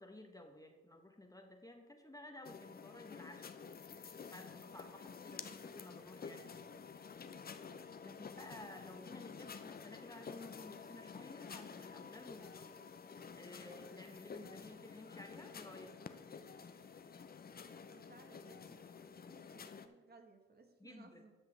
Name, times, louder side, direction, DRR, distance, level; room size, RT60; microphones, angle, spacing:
voice 1, 0.0-3.6 4.3-6.7 8.0-12.8 13.1-16.0 20.8-21.2, left 1 dB, 10° left, 4 dB, 1.0 m, -54 dB
sound 1, 2.4-19.9, left 6 dB, 30° left, 0.7 m, -51 dB
voice 2, 17.9-18.9 19.2-21.3, right 3 dB, 35° right, 5 dB, 1.4 m, -62 dB
13.0 x 5.9 x 3.3 m, 1.3 s
supercardioid pair, 60°, 29 cm